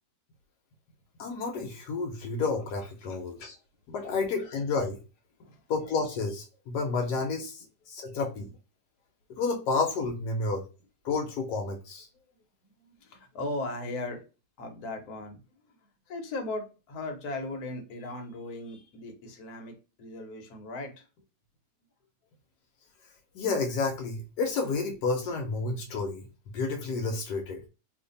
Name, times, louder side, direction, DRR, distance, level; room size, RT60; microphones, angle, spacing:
voice 1, 1.2-3.6 3.9-5.0 5.7-8.5 9.3-10.6 11.0-12.1 23.3-26.3 26.5-27.6, left 4 dB, 85° left, 1.3 m, -30 dB
voice 2, 12.8-14.2 14.6-15.4 16.1-21.1, left 2 dB, 70° left, 1.3 m, -37 dB
2.8 x 2.5 x 3.8 m
omnidirectional pair, 1.7 m